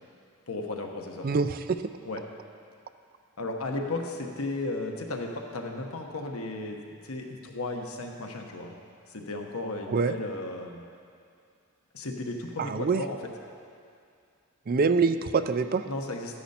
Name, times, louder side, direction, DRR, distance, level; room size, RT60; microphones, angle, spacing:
voice 1, 0.5-1.3 2.0-2.2 3.4-8.7 9.1-10.8 11.9-13.2 15.8-16.4, left 2 dB, 80° left, 2 dB, 1.2 m, -35 dB
voice 2, 1.2-1.8 9.9-10.1 12.6-13.0 14.7-15.8, right 4 dB, 40° right, 11 dB, 0.4 m, -25 dB
13.0 x 10.0 x 4.3 m, 2.4 s
head